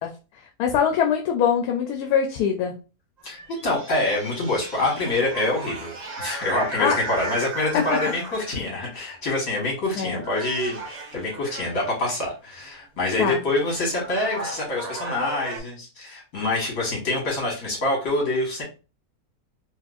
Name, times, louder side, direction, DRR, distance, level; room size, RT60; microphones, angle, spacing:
voice 1, 0.6-2.7 6.8-6.9 7.7-7.8 10.0-10.2 13.2-13.4, left 8 dB, 85° left, 3 dB, 1.1 m, -22 dB
voice 2, 3.2-5.9 6.2-18.6, left 2 dB, 65° left, -1 dB, 1.9 m, -26 dB
sound 1, 3.2-8.8 9.6-9.9 10.2-12.0 13.4-13.5 13.9-15.6, right 3 dB, 35° right, 0.8 m, -35 dB
4.3 x 2.2 x 2.4 m, 0.32 s
omnidirectional pair, 1.6 m